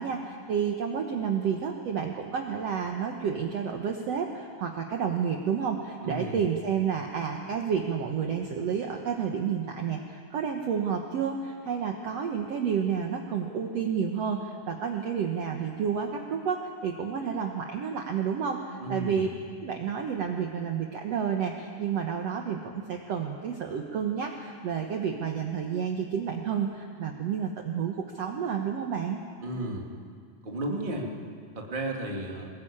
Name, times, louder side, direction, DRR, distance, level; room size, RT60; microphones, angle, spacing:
voice 1, 0.0-19.3 19.6-29.2, right 7 dB, 60° right, 3 dB, 1.9 m, -30 dB
voice 2, 6.0-6.4 18.8-19.3 29.4-29.9 30.4-31.1 31.5-32.5, right 1 dB, 15° right, 0 dB, 2.0 m, -33 dB
22.5 x 20.0 x 8.8 m, 2.1 s
omnidirectional pair, 4.0 m